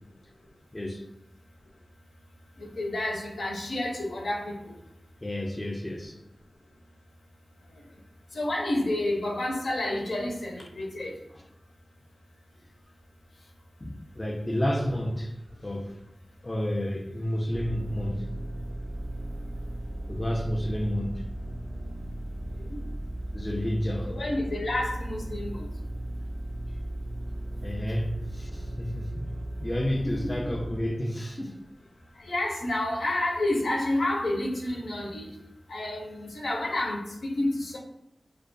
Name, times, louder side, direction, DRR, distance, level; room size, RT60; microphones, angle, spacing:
voice 1, 0.7-1.0 5.2-6.1 13.8-15.3 15.6-16.0 16.4-18.3 20.1-21.2 23.3-24.1 27.6-29.3 29.6-31.6, equal, 25° left, 0.3 m, -30 dB
voice 2, 2.6-4.7 8.3-11.2 24.0-25.7 30.2-30.4 32.2-35.3 35.7-37.8, left 1 dB, 85° left, 0.5 m, -29 dB
sound 1, 17.5-30.9, right 1 dB, 75° right, 0.3 m, -36 dB
2.2 x 2.2 x 2.5 m
cardioid pair, 40°, 0 cm